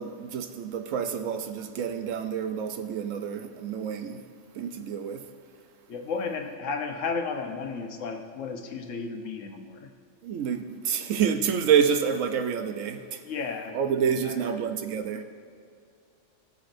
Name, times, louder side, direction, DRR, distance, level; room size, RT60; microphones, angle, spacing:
voice 1, 0.0-4.2 4.6-5.2 10.2-13.0 13.7-15.2, right 7 dB, 90° right, 7 dB, 1.1 m, -28 dB
voice 2, 5.9-9.9 13.2-14.6, left 4 dB, 80° left, 5 dB, 1.2 m, -34 dB
17.0 x 7.0 x 2.6 m, 2.3 s
omnidirectional pair, 1.3 m